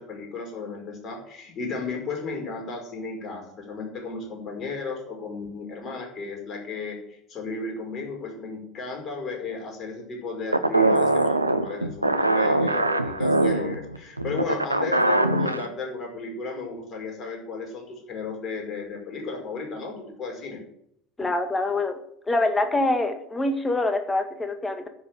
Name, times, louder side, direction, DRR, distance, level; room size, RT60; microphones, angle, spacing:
voice 1, 0.0-7.0 7.3-20.6, left 4 dB, 40° left, 1 dB, 5.2 m, -34 dB
sound 1, 10.5-15.7, right 2 dB, 90° right, 0.6 m, -22 dB
voice 2, 21.2-22.0 22.3-24.9, left 2 dB, 15° left, 6 dB, 1.9 m, -25 dB
10.5 x 7.4 x 9.1 m, 0.71 s
figure-of-eight pair, 65°, 0 cm